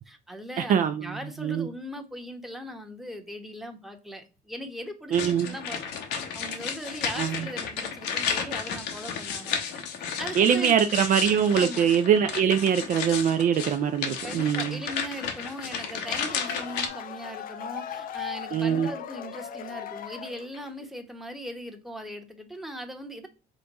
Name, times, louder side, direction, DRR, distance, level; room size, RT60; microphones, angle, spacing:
voice 1, 0.0-0.8 1.0-10.8 11.5-11.9 14.2-23.3, equal, ahead, 0.9 m, -39 dB
voice 2, 0.6-1.7 5.1-5.5 7.2-7.5 10.4-14.8 18.5-18.9, right 8 dB, 50° right, 0.4 m, -23 dB
sound 1, 5.1-16.9, left 7 dB, 80° left, 0.9 m, -33 dB
sound 2, 15.8-20.8, left 9 dB, 55° left, 0.5 m, -38 dB
5.0 x 2.2 x 3.9 m
cardioid pair, 110°, 17 cm